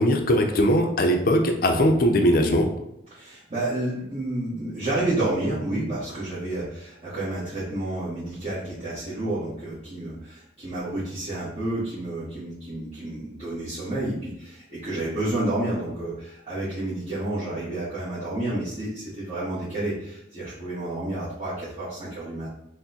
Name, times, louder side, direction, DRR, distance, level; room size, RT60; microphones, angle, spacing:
voice 1, 0.0-2.7, equal, 50° left, 4 dB, 0.5 m, -20 dB
voice 2, 3.1-22.5, right 1 dB, 35° right, -11 dB, 1.0 m, -30 dB
5.8 x 2.1 x 2.8 m, 0.78 s
head